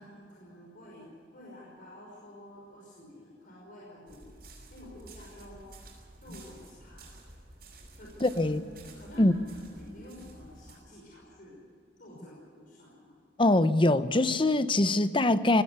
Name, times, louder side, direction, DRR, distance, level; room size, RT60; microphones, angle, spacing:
voice 1, 0.0-5.7 6.2-7.3 8.0-11.6 12.0-13.2, equal, 50° left, -4 dB, 5.4 m, -50 dB
sound 1, 4.1-10.8, right 2 dB, 55° right, 6.6 m, -51 dB
voice 2, 8.2-8.6 9.2-9.3 13.4-15.6, left 2 dB, 30° left, 12 dB, 0.8 m, -23 dB
19.0 x 16.5 x 9.5 m, 2.2 s
head